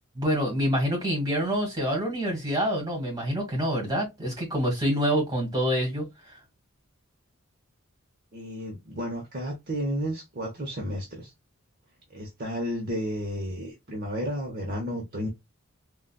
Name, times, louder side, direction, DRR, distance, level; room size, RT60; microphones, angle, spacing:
voice 1, 0.1-6.0, equal, 20° right, 1.7 m, -26 dB
voice 2, 8.3-11.3 12.1-15.3, equal, 45° right, 0.8 m, -32 dB
3.8 x 2.3 x 2.2 m
head